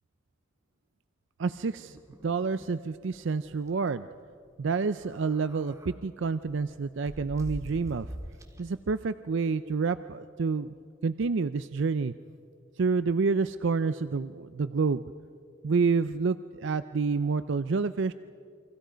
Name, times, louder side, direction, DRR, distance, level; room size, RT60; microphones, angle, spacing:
voice 1, 1.4-4.1 4.6-8.1 8.6-10.7 11.0-12.1 12.8-15.0 15.6-18.1, right 4 dB, 65° right, 13 dB, 0.5 m, -28 dB
sound 1, 1.8-2.8 3.1-3.2 3.5-3.7 4.9-5.9 6.5-8.7, equal, 15° right, 1.8 m, -44 dB
29.0 x 24.5 x 5.1 m, 2.3 s
head